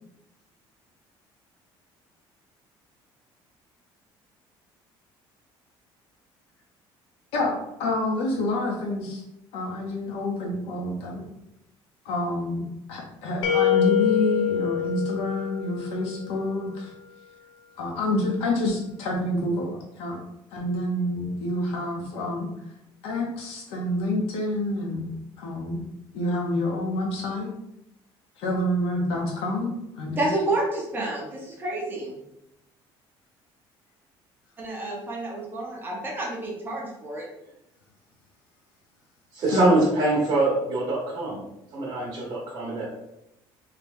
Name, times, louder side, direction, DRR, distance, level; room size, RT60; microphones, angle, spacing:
voice 1, 7.3-9.2 9.5-11.2 12.0-12.6 12.9-16.9 17.8-20.2 20.5-22.5 23.0-25.0 25.4-25.8 26.1-27.5 28.4-30.3 39.5-39.7, left 1 dB, 85° left, -2 dB, 0.9 m, -28 dB
sound 1, 13.4-16.3, left 10 dB, 55° left, 0.5 m, -25 dB
voice 2, 30.2-32.1 34.6-37.3, right 2 dB, 20° right, -2 dB, 0.9 m, -29 dB
voice 3, 39.3-41.4 41.7-43.0, right 2 dB, 45° right, -4 dB, 1.1 m, -24 dB
3.2 x 2.8 x 3.5 m, 0.83 s
cardioid pair, 165°, 10 cm